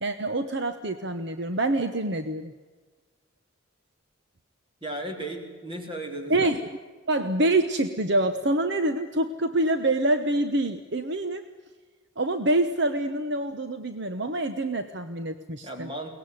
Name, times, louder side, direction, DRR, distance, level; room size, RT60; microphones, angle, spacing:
voice 1, 0.0-2.5 6.3-6.8 7.1-11.4 12.2-15.9, right 2 dB, 55° right, 9 dB, 1.1 m, -26 dB
voice 2, 4.8-6.6 15.6-16.2, right 1 dB, 25° right, 3 dB, 3.7 m, -35 dB
23.0 x 19.0 x 9.5 m, 1.4 s
head